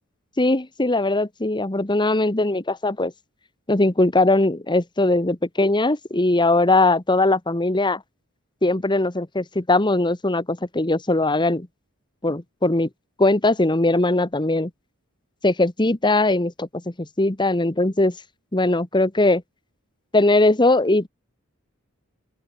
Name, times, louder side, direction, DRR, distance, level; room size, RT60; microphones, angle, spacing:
voice 1, 0.4-3.1 3.7-8.0 8.6-11.7 12.2-12.9 13.2-14.7 15.4-18.1 18.5-19.4 20.1-21.1, left 2 dB, 20° left, 1.4 m, -20 dB
open air
head